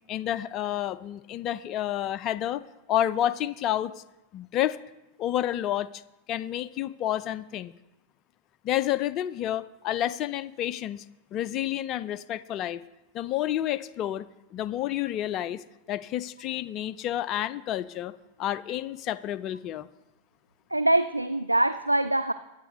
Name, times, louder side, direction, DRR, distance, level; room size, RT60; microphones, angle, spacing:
voice 1, 0.1-2.6 2.9-3.9 4.3-4.8 5.2-6.0 6.3-7.7 8.6-11.0 11.3-12.8 13.1-14.2 14.5-18.1 18.4-19.9, left 12 dB, 35° left, 15 dB, 0.5 m, -29 dB
voice 2, 20.7-22.3, right 1 dB, 85° right, 12 dB, 0.3 m, -23 dB
22.5 x 8.9 x 3.1 m, 0.98 s
figure-of-eight pair, 90°, 0 cm